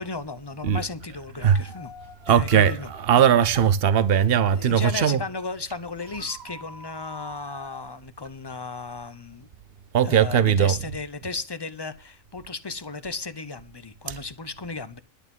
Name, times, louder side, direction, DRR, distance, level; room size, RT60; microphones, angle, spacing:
voice 1, 0.0-1.9 2.3-2.9 4.5-9.5 10.0-15.0, left 4 dB, 25° left, 0.6 m, -35 dB
sound 1, 1.5-5.7 5.9-7.8, equal, 35° right, 2.2 m, -45 dB
voice 2, 2.3-5.2 9.9-10.8 14.1-14.2, right 8 dB, 50° right, 1.0 m, -19 dB
11.5 x 8.7 x 5.4 m
omnidirectional pair, 1.3 m